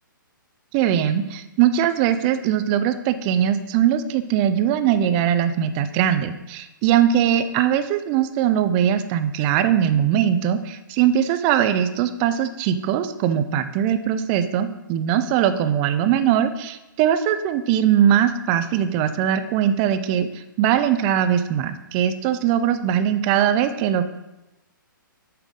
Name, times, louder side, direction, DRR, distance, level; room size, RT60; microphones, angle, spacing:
voice 1, 0.7-24.0, right 9 dB, 25° right, 10 dB, 0.4 m, -21 dB
8.4 x 3.5 x 3.7 m, 0.98 s
figure-of-eight pair, 130°, 11 cm